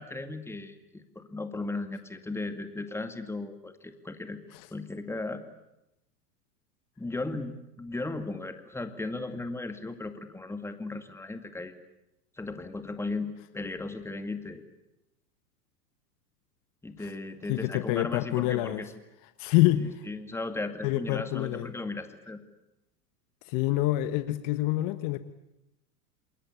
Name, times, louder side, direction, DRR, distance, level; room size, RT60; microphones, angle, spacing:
voice 1, 0.0-4.4 4.7-5.4 7.0-11.7 12.4-14.6 16.8-18.9 20.1-22.4, left 2 dB, 5° left, 8 dB, 2.2 m, -36 dB
voice 2, 17.5-18.8 19.4-20.1 20.8-21.7 23.4-25.2, left 16 dB, 45° left, 11 dB, 1.3 m, -27 dB
27.5 x 21.5 x 8.7 m, 0.87 s
hypercardioid pair, 110°, 48 cm